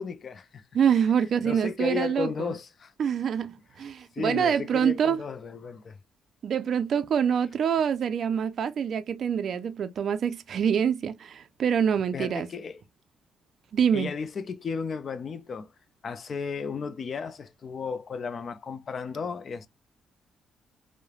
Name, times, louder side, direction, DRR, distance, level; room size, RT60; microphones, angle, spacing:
voice 1, 0.0-0.6 1.4-2.9 4.1-6.0 12.1-12.8 13.9-15.7 16.0-19.7, left 5 dB, 45° left, 0.4 m, -34 dB
voice 2, 0.7-2.5 3.0-5.2 6.4-12.5 13.7-14.1, right 8 dB, 60° right, 0.3 m, -25 dB
3.0 x 2.0 x 2.3 m
cardioid pair, 90°, 0 cm